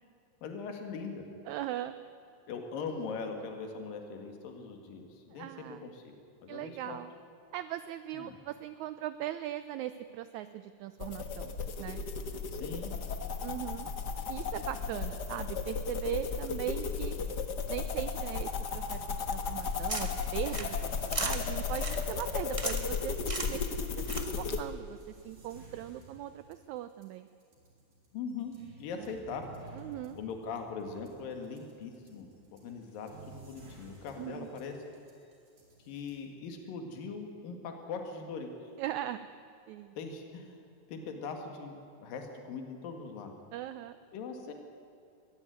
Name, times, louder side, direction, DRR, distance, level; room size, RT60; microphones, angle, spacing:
voice 1, 0.4-1.2 2.5-6.2 6.4-7.0 8.1-8.4 12.5-12.9 28.1-28.5 28.8-29.5 30.2-34.8 35.8-38.5 40.0-40.6 40.9-43.3 44.1-44.5, left 5 dB, 80° left, 4 dB, 3.6 m, -41 dB
voice 2, 1.5-2.0 5.3-5.9 6.5-7.1 7.5-11.5 11.8-12.0 13.4-13.9 14.3-17.2 17.7-27.3 28.9-29.1 29.7-30.2 34.2-34.5 38.8-39.2 39.7-39.9 43.5-44.0, right 12 dB, 80° right, 12 dB, 1.7 m, -39 dB
sound 1, 11.0-24.6, left 5 dB, 55° left, 1.1 m, -35 dB
sound 2, 19.5-24.6, right 2 dB, 30° right, 0.5 m, -40 dB
sound 3, 21.0-36.2, right 2 dB, 65° right, 5.9 m, -56 dB
22.0 x 16.5 x 9.3 m, 2.6 s
omnidirectional pair, 4.0 m